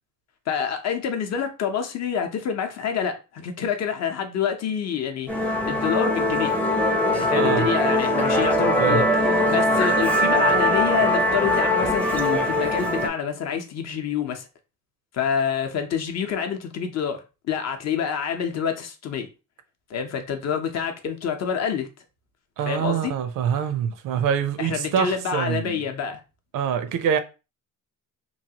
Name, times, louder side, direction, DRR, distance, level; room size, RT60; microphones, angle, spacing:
voice 1, 0.5-6.5 7.1-14.5 15.1-19.3 19.9-21.9 22.7-23.1 24.6-26.2, left 7 dB, 55° left, 0.6 m, -27 dB
Musical instrument, 5.3-13.1, left 1 dB, 5° left, 0.5 m, -21 dB
voice 2, 7.3-7.7 8.8-9.0 22.6-25.8 26.5-27.2, right 8 dB, 75° right, 0.5 m, -25 dB
3.1 x 2.3 x 2.8 m
cardioid pair, 140°, 32 cm